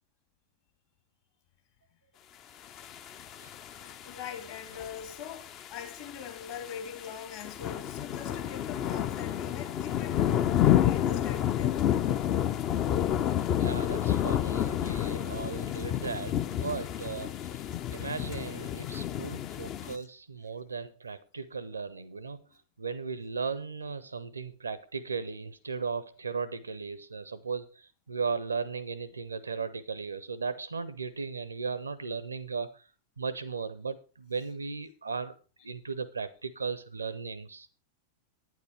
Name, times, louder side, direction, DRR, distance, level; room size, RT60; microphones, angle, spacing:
sound 1, 2.8-19.9, left 11 dB, 35° left, 0.5 m, -30 dB
voice 1, 4.0-11.8 19.9-20.1, left 8 dB, 50° left, 2.9 m, -42 dB
voice 2, 13.6-17.6 17.9-22.4 22.8-32.9 33.2-35.3 35.6-37.7, right 5 dB, 75° right, 0.5 m, -36 dB
9.6 x 9.4 x 4.5 m
figure-of-eight pair, 90°, 0 cm